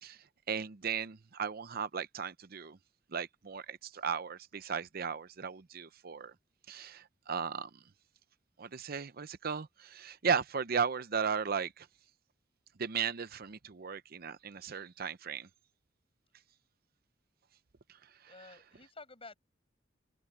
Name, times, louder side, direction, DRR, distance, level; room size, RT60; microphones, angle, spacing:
voice 1, 0.0-2.8 3.1-6.3 6.7-7.7 8.6-11.9 12.8-15.5 18.2-18.3, right 6 dB, 55° right, 0.7 m, -36 dB
voice 2, 18.2-19.4, left 3 dB, 30° left, 7.0 m, -51 dB
head